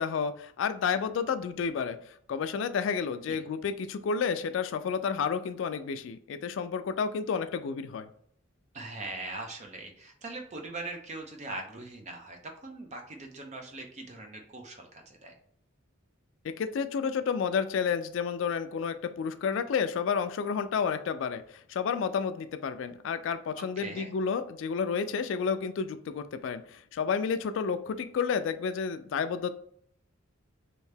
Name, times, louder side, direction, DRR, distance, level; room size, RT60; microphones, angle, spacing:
voice 1, 0.0-8.1 16.4-21.4 21.7-29.5, left 6 dB, 65° left, 11 dB, 0.3 m, -31 dB
voice 2, 8.7-15.4 23.6-24.1, right 2 dB, 35° right, 3 dB, 0.6 m, -41 dB
3.2 x 2.7 x 3.3 m, 0.63 s
head